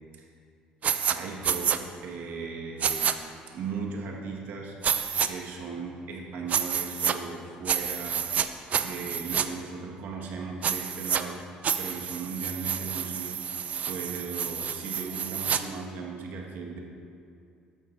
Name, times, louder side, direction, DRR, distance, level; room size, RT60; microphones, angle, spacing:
sound 1, 0.8-1.1 1.4-1.8 2.8-3.1 4.8-5.3 6.5-7.1 7.6-8.5 8.7-9.4 10.6-11.2 11.6-15.6, right 8 dB, 45° right, 0.5 m, -28 dB
voice 1, 1.0-3.1 3.5-4.8 5.2-8.3 8.8-11.4 11.8-13.4 13.8-16.8, right 4 dB, 65° right, -1 dB, 1.6 m, -37 dB
13.0 x 9.4 x 2.7 m, 2.4 s
supercardioid pair, 80°, 3 cm